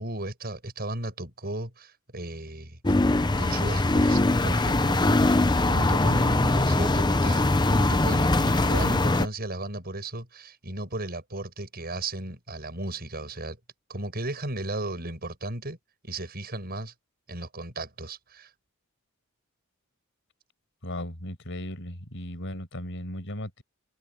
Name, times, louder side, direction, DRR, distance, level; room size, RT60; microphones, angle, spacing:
voice 1, 0.0-2.8 3.4-13.6 13.9-15.8 16.0-16.9 17.3-18.5, right 2 dB, 45° right, 7.8 m, -35 dB
sound 1, 2.8-9.3, left 2 dB, 20° left, 0.8 m, -22 dB
voice 2, 20.8-23.6, left 1 dB, 60° left, 6.1 m, -36 dB
head